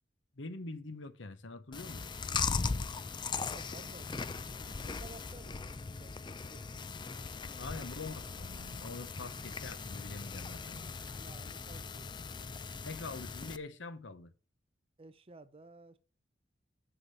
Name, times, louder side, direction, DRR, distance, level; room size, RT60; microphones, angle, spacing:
voice 1, 0.4-2.1 7.6-10.9 12.8-14.3, left 3 dB, 85° left, 1.0 m, -44 dB
Chewing mastication, 1.7-13.6, left 5 dB, 25° left, 0.4 m, -39 dB
voice 2, 3.4-6.7 7.3-7.9 8.2-8.3 11.2-12.1 12.4-12.6 15.0-16.0, right 3 dB, 30° right, 0.7 m, -55 dB
7.3 x 6.7 x 5.7 m
head